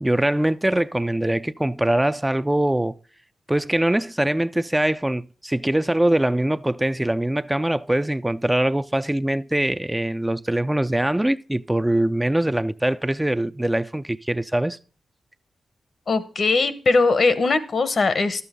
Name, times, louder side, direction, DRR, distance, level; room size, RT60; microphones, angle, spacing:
voice 1, 0.0-3.0 3.5-14.8, right 1 dB, 15° right, 0.3 m, -22 dB
voice 2, 16.1-18.5, left 3 dB, 60° left, 0.9 m, -20 dB
12.0 x 6.9 x 3.6 m
supercardioid pair, 40°, 0 cm